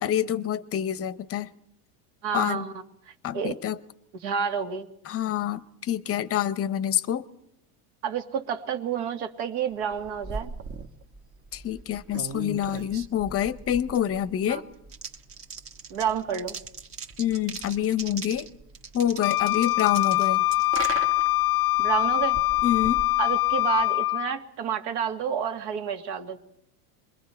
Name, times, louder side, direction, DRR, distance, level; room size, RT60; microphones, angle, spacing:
voice 1, 0.0-1.5 2.3-2.7 3.2-3.8 5.1-7.3 11.5-14.7 17.2-18.5 18.9-20.4 22.6-23.1, left 10 dB, 30° left, 0.8 m, -27 dB
voice 2, 2.2-2.7 3.3-3.5 4.2-4.9 8.0-10.5 14.5-14.6 15.9-16.6 21.8-22.4 23.2-26.4, right 7 dB, 65° right, 2.1 m, -29 dB
sound 1, 9.8-23.9, right 4 dB, 30° right, 1.3 m, -40 dB
Wind instrument woodwind instrument, 19.2-24.4, left 19 dB, 85° left, 0.7 m, -23 dB
27.0 x 22.0 x 4.5 m
supercardioid pair, 130°, 46 cm